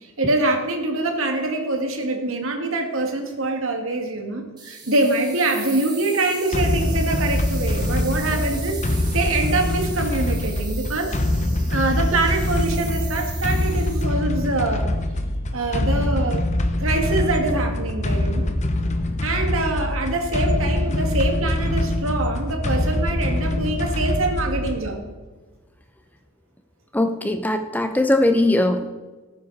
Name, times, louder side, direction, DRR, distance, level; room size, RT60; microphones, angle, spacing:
voice 1, 0.0-11.1 11.7-14.9 15.5-16.4 16.8-18.5 19.2-25.0, right 2 dB, 70° right, 3 dB, 2.1 m, -24 dB
sound 1, 4.6-14.0, right 4 dB, 20° right, 2.2 m, -39 dB
sound 2, 6.5-24.9, left 1 dB, 35° left, 0.9 m, -24 dB
voice 2, 26.9-28.9, left 1 dB, 10° left, 7 dB, 0.6 m, -20 dB
18.0 x 9.6 x 4.1 m, 1.3 s
head